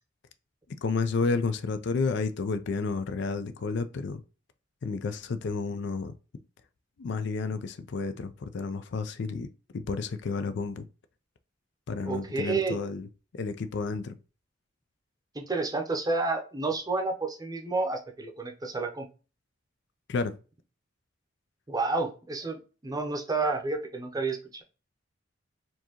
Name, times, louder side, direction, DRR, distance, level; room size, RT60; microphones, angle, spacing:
voice 1, 0.8-4.2 4.8-6.1 7.0-10.8 11.9-13.1 13.3-14.2 20.1-20.3, left 4 dB, 60° left, 0.4 m, -31 dB
voice 2, 12.0-12.8 15.3-19.1 21.7-24.6, right 3 dB, 20° right, 0.7 m, -30 dB
4.4 x 2.8 x 2.9 m
head